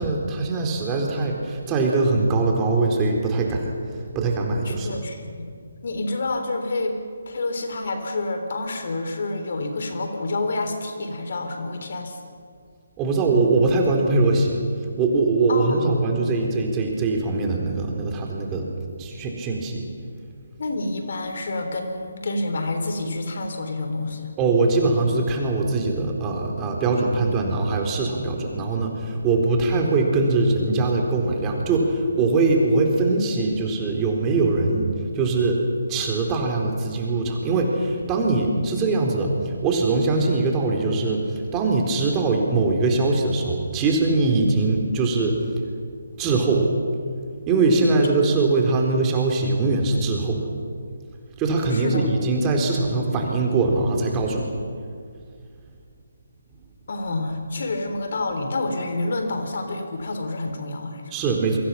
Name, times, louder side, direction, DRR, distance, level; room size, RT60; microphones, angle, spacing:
voice 1, 0.0-3.7 4.1-5.0 13.0-14.6 15.0-18.7 19.0-19.9 24.4-35.6 35.9-41.2 41.5-45.4 46.2-46.7 47.5-50.4 51.4-54.5 61.1-61.6, right 3 dB, 20° right, 1 dB, 4.1 m, -22 dB
voice 2, 4.7-5.5 5.8-6.9 7.3-12.2 15.5-15.9 20.6-24.3 51.7-52.1 56.9-61.0, left 2 dB, 55° left, 6 dB, 3.6 m, -28 dB
28.0 x 24.0 x 5.9 m, 2.2 s
figure-of-eight pair, 145°, 0 cm